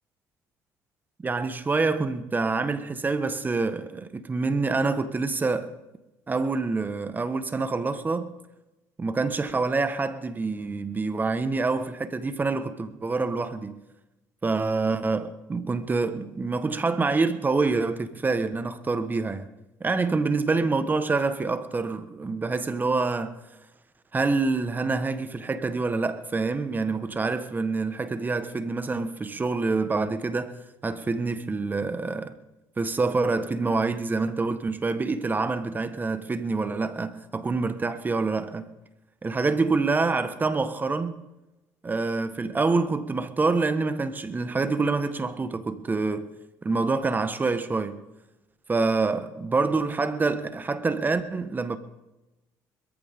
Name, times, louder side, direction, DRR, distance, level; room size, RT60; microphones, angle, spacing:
voice 1, 1.2-5.7 6.3-8.3 9.0-13.8 14.4-19.5 19.8-23.4 24.1-30.5 30.8-32.3 32.8-38.7 39.2-41.2 41.8-46.3 46.6-48.0 48.7-51.8, right 3 dB, 25° right, 1.3 m, -26 dB
21.5 x 14.5 x 3.7 m
supercardioid pair, 90°, 8 cm